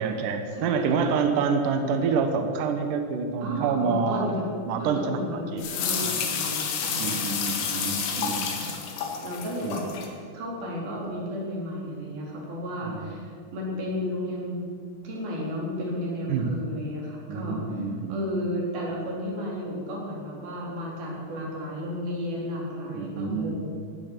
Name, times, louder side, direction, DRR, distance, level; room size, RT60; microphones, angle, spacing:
voice 1, 0.0-4.3 4.7-6.2 7.0-8.6 9.6-9.8 12.8-13.1 16.3-16.6 17.3-18.2 22.9-23.6, right 5 dB, 80° right, 6 dB, 1.9 m, -27 dB
voice 2, 0.6-1.1 3.4-4.5 4.8-8.2 8.5-8.7 9.2-9.8 10.3-14.7 15.0-17.7 18.1-23.6, equal, 50° right, -3 dB, 5.3 m, -33 dB
sound 1, 5.6-10.1, left 6 dB, 75° left, 4.1 m, -30 dB
16.0 x 14.5 x 6.1 m, 2.1 s
omnidirectional pair, 5.5 m